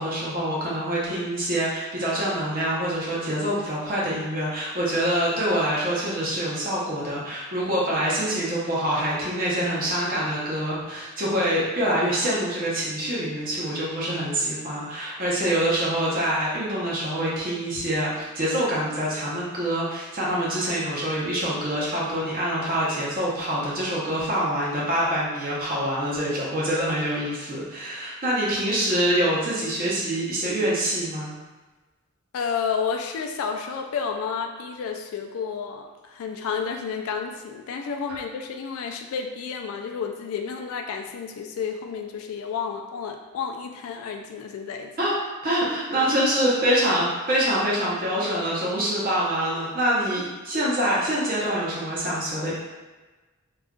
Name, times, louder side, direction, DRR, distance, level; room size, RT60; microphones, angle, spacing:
voice 1, 0.0-31.3 45.0-45.1 45.4-52.5, right 1 dB, 40° right, -6 dB, 0.8 m, -25 dB
voice 2, 32.3-44.9, left 6 dB, 80° left, 4 dB, 0.3 m, -31 dB
2.5 x 2.2 x 3.7 m, 1.2 s
head